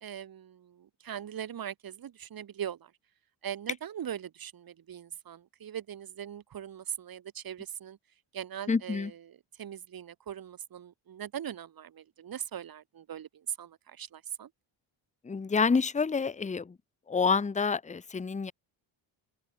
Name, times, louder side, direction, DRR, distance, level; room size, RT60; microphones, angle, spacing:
voice 1, 0.0-2.9 3.4-8.0 8.3-14.5, right 9 dB, 50° right, 2.6 m, -40 dB
voice 2, 8.7-9.1 15.2-16.7 17.1-18.5, left 5 dB, 15° left, 1.0 m, -28 dB
open air
cardioid pair, 135°, 47 cm